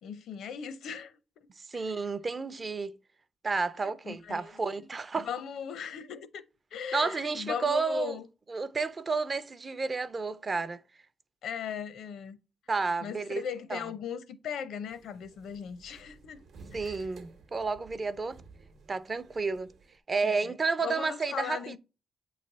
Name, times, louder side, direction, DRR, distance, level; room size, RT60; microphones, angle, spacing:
voice 1, 0.0-1.1 1.7-1.9 3.8-4.5 5.2-6.4 6.7-8.3 11.4-12.4 13.0-16.4 16.8-17.0 20.2-20.6 20.8-21.8, left 7 dB, 75° left, 0.6 m, -38 dB
voice 2, 1.7-2.9 3.4-5.3 6.9-8.2 8.5-10.8 12.7-13.4 13.7-13.8 16.7-18.4 18.9-19.7 20.1-21.8, right 4 dB, 30° right, 0.4 m, -31 dB
sound 1, 14.9-20.0, right 4 dB, 65° right, 0.9 m, -54 dB
8.3 x 3.2 x 3.9 m
cardioid pair, 120°, 0 cm